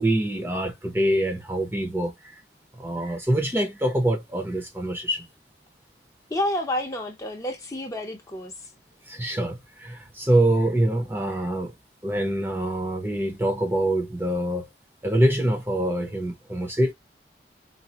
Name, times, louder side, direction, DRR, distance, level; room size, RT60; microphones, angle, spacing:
voice 1, 0.0-2.3 2.8-5.3 9.1-11.7 12.0-14.7 15.0-16.9, right 1 dB, 15° right, 0.7 m, -25 dB
voice 2, 6.3-8.5, left 1 dB, 20° left, 0.7 m, -29 dB
4.1 x 2.1 x 2.8 m
head